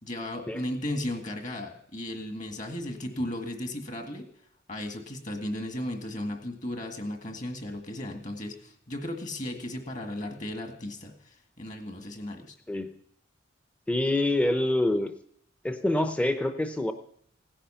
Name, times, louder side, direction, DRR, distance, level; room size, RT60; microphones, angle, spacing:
voice 1, 0.0-4.3 4.7-12.5, left 1 dB, 40° left, 4 dB, 1.9 m, -35 dB
voice 2, 13.9-15.1 15.6-16.9, left 1 dB, 5° left, 7 dB, 0.7 m, -26 dB
16.5 x 10.0 x 5.7 m, 0.69 s
head